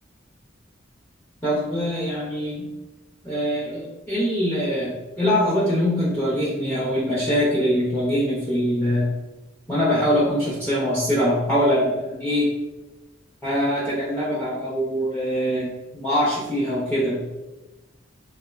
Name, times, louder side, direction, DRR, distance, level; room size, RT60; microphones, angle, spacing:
voice 1, 1.4-2.7 3.2-9.1 9.7-12.5 13.4-17.2, equal, 10° left, -8 dB, 0.4 m, -23 dB
2.8 x 2.0 x 2.3 m, 1.1 s
head